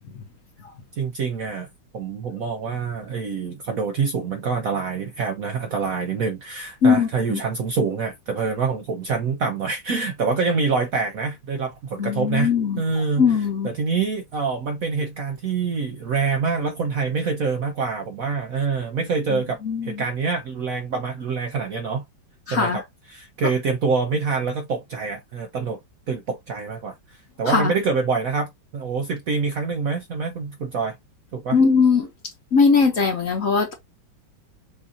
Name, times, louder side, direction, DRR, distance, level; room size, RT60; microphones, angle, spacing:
voice 1, 1.0-1.7 1.9-12.5 12.8-22.0 22.5-25.8 26.1-31.0 31.3-31.6, right 5 dB, 60° right, 0.9 m, -26 dB
voice 2, 6.8-7.4 12.0-12.8 13.2-13.7 19.3-20.0 22.5-22.8 27.5-27.7 31.5-32.1 32.5-33.7, left 5 dB, 50° left, 1.2 m, -20 dB
6.3 x 2.8 x 2.6 m
omnidirectional pair, 2.2 m